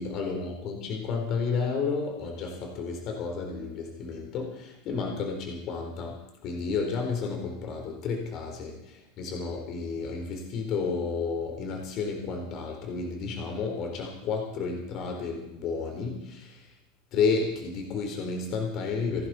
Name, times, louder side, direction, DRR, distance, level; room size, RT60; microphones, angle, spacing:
voice 1, 0.0-6.2 6.4-16.7 17.1-19.3, left 5 dB, 45° left, 3 dB, 3.9 m, -31 dB
28.0 x 11.5 x 4.3 m, 0.87 s
figure-of-eight pair, 85°, 0 cm